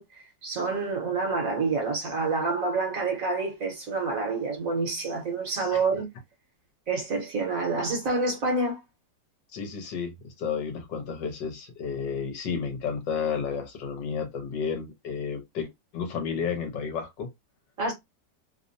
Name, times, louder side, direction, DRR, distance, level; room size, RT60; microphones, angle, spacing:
voice 1, 0.0-6.1 6.9-8.8 17.8-17.9, right 3 dB, 55° right, 1.2 m, -28 dB
voice 2, 9.5-17.3, left 6 dB, 75° left, 1.5 m, -32 dB
3.4 x 2.1 x 2.6 m
omnidirectional pair, 2.0 m